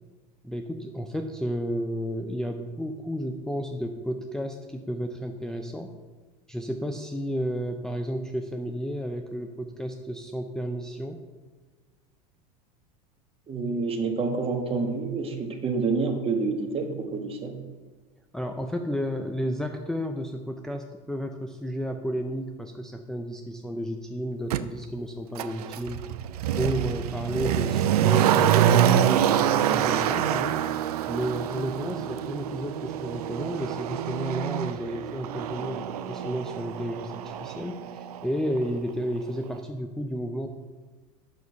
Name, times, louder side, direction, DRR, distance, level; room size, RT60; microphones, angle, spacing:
voice 1, 0.4-5.9 6.5-11.2 18.3-26.0 26.6-30.6 31.1-40.5, equal, 5° left, 3 dB, 0.5 m, -32 dB
voice 2, 13.5-17.6, right 4 dB, 30° right, 4 dB, 1.5 m, -28 dB
Motor vehicle (road), 24.5-24.6 25.4-38.3 38.6-38.7, right 10 dB, 85° right, 0.5 m, -26 dB
7.1 x 6.2 x 5.6 m, 1.3 s
hypercardioid pair, 100°, 19 cm